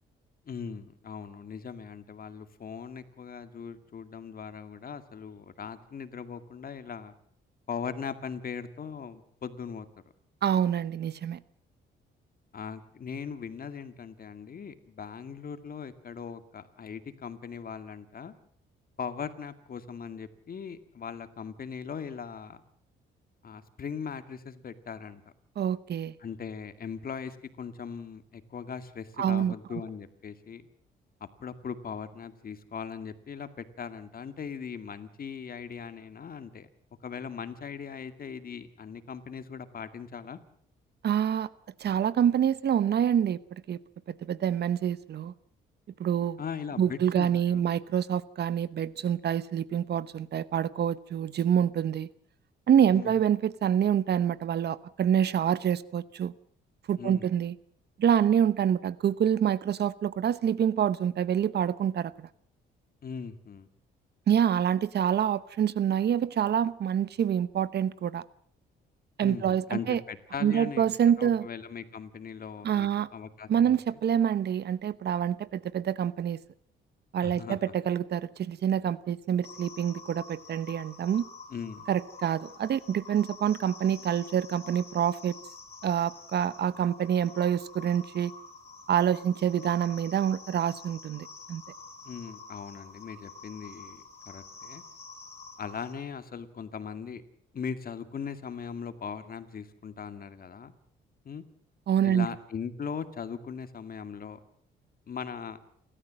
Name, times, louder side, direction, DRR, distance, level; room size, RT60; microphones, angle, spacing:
voice 1, 0.5-7.1 7.7-9.9 12.5-18.3 19.0-22.6 23.4-25.2 26.2-30.6 31.2-36.7 37.0-40.4 46.4-47.7 52.9-53.2 57.0-57.3 63.0-63.7 69.2-70.9 71.2-73.7 77.2-77.6 81.5-81.8 92.0-94.8 95.6-97.2 97.5-100.7 101.3-101.4 102.0-104.4 105.1-105.6, left 6 dB, 45° left, 10 dB, 2.2 m, -39 dB
voice 2, 10.4-11.4 25.6-26.1 29.2-29.5 41.0-41.5 41.8-43.8 44.1-45.3 46.0-46.4 46.8-52.1 52.7-56.3 56.9-57.5 58.0-62.3 64.3-68.2 69.2-70.0 70.4-71.5 72.6-73.1 73.5-76.4 77.1-81.2 81.9-85.4 85.8-88.3 88.9-91.6 101.9-102.3, right 9 dB, 55° right, 18 dB, 0.9 m, -26 dB
sound 1, 79.4-95.9, left 4 dB, 30° left, 6.4 m, -48 dB
29.0 x 13.5 x 7.7 m, 0.63 s
cardioid pair, 90°, 20 cm